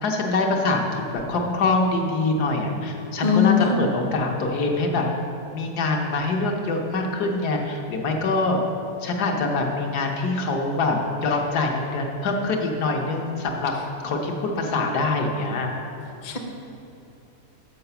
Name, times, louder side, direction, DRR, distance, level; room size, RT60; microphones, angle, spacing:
voice 1, 0.0-5.0 5.5-8.6 9.0-13.7 14.0-15.7, left 3 dB, 80° left, 1 dB, 1.4 m, -24 dB
voice 2, 3.2-3.8 16.2-16.4, left 7 dB, 45° left, 2 dB, 0.5 m, -20 dB
6.8 x 4.9 x 6.8 m, 2.9 s
omnidirectional pair, 1.7 m